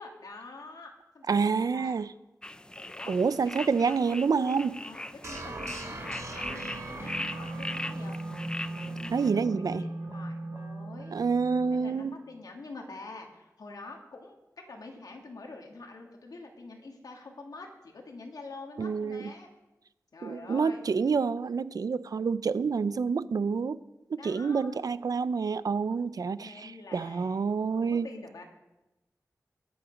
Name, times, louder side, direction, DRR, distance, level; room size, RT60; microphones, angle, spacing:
voice 1, 0.0-2.0 2.8-3.2 3.6-8.2 8.5-11.2 11.7-14.4 14.7-19.5 20.1-20.8 24.2-24.8 26.4-27.5 27.8-28.4, left 3 dB, 80° left, 1 dB, 1.9 m, -46 dB
voice 2, 1.3-2.1 3.1-4.8 9.1-9.8 11.1-12.1 18.8-19.3 20.2-23.8 24.1-28.1, right 5 dB, 75° right, 16 dB, 0.5 m, -28 dB
sound 1, 2.4-9.3, left 1 dB, 15° left, 0.4 m, -40 dB
sound 2, 5.2-12.2, right 2 dB, 45° right, 1.8 m, -39 dB
21.0 x 8.0 x 5.2 m, 1.0 s
wide cardioid pair, 80°, 6 cm